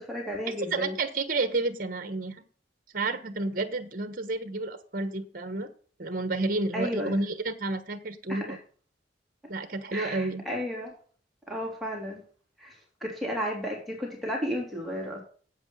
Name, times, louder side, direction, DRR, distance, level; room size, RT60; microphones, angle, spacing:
voice 1, 0.0-1.0 6.7-7.2 8.3-8.6 9.9-10.9 11.5-12.2 12.6-12.8 13.0-15.2, equal, ahead, -2 dB, 3.1 m, -33 dB
voice 2, 0.7-2.4 2.9-5.7 6.0-8.6 9.5-10.4, right 3 dB, 50° right, 10 dB, 1.2 m, -30 dB
8.3 x 8.3 x 5.5 m, 0.43 s
head